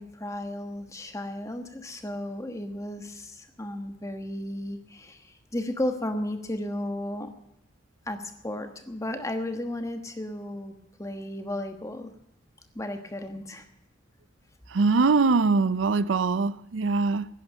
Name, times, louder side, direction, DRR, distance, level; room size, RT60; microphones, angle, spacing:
voice 1, 0.0-7.3 8.1-12.1 12.7-13.6, left 1 dB, 15° left, 1.3 m, -34 dB
voice 2, 14.7-17.3, right 4 dB, 80° right, 0.5 m, -22 dB
11.0 x 10.5 x 9.2 m
head